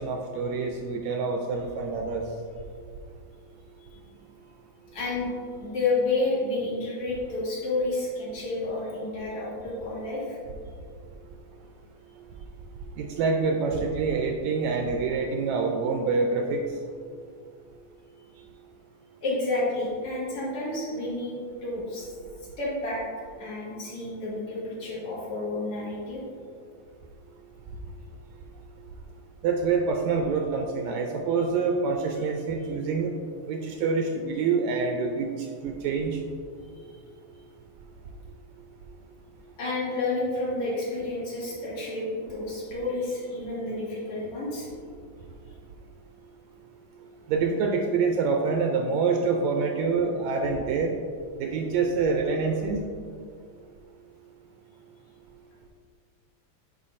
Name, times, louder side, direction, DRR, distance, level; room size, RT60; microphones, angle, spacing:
voice 1, 0.0-2.3 13.0-16.6 29.4-33.1 33.5-36.2 47.3-50.9 51.4-52.8, right 4 dB, 80° right, 2 dB, 1.7 m, -26 dB
voice 2, 4.9-5.3 5.6-10.4 19.2-22.1 22.6-23.0 23.4-26.2 36.9-37.0 39.6-44.7, left 2 dB, 55° left, -7 dB, 2.6 m, -30 dB
9.5 x 5.7 x 2.5 m, 2.2 s
omnidirectional pair, 3.4 m